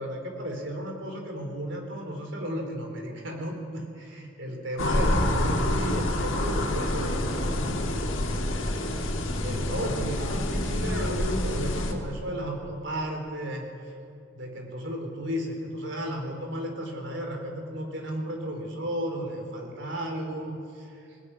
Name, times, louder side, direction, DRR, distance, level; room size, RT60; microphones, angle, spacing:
voice 1, 0.0-8.2 8.6-13.7 14.4-20.9, equal, 65° right, 3 dB, 4.2 m, -34 dB
sound 1, 4.8-11.9, left 1 dB, 85° left, 3.0 m, -27 dB
20.0 x 17.0 x 9.9 m, 2.6 s
head